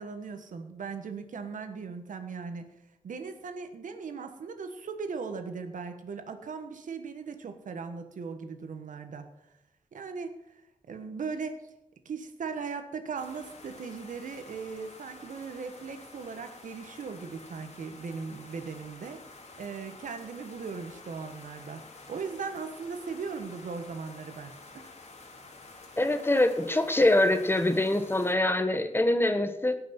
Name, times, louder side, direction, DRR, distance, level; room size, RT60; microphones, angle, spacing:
voice 1, 0.0-2.7 3.0-9.3 9.9-10.4 10.9-11.6 12.0-19.2 19.6-24.9, right 5 dB, 80° right, 7 dB, 1.3 m, -38 dB
sound 1, 13.2-28.3, left 3 dB, 60° left, 2.3 m, -50 dB
voice 2, 26.0-29.8, left 1 dB, 15° left, 9 dB, 1.1 m, -24 dB
17.5 x 6.1 x 5.9 m, 0.87 s
wide cardioid pair, 90°, 13 cm